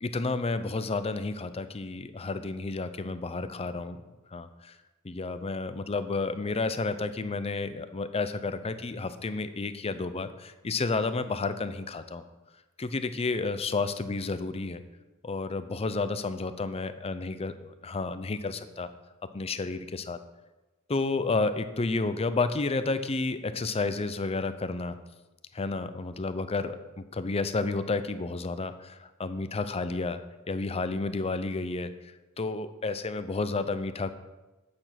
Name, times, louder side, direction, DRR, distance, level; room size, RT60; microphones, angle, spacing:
voice 1, 0.0-4.0 4.3-4.7 5.0-12.2 12.8-14.8 15.2-18.9 19.3-20.2 20.9-25.0 25.5-30.2 30.5-31.9 32.4-34.1, left 3 dB, 30° left, 11 dB, 0.5 m, -31 dB
8.5 x 6.9 x 5.8 m, 1.1 s
head